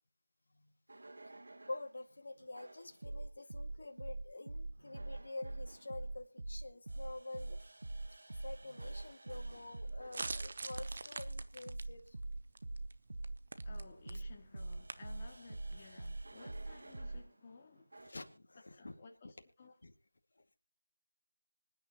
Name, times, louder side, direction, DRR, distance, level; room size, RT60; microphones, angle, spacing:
sound 1, 0.9-1.9 2.6-17.2 17.9-18.3, right 2 dB, 65° right, 1.5 m, -44 dB
voice 1, 1.7-7.6 8.4-12.2 14.1-14.2 18.0-18.9 19.2-19.3 19.8-19.9 20.4-20.6, left 2 dB, 60° left, 2.2 m, -48 dB
sound 2, 9.3-17.0, right 3 dB, 45° right, 1.0 m, -49 dB
voice 2, 13.6-17.9 18.8-19.3 19.6-19.7, left 4 dB, 25° left, 2.2 m, -57 dB
25.5 x 9.6 x 3.0 m
figure-of-eight pair, 170°, 0 cm